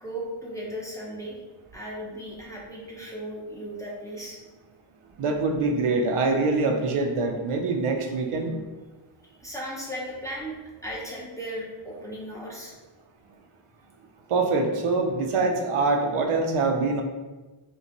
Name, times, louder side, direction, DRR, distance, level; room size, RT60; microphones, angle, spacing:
voice 1, 0.0-1.4 1.7-4.4 9.3-10.5 10.8-12.7, equal, 5° left, -5 dB, 0.7 m, -36 dB
voice 2, 5.2-8.6 14.3-17.0, right 3 dB, 85° right, 3 dB, 0.7 m, -24 dB
5.3 x 2.2 x 2.9 m, 1.2 s
wide cardioid pair, 140°, 50 cm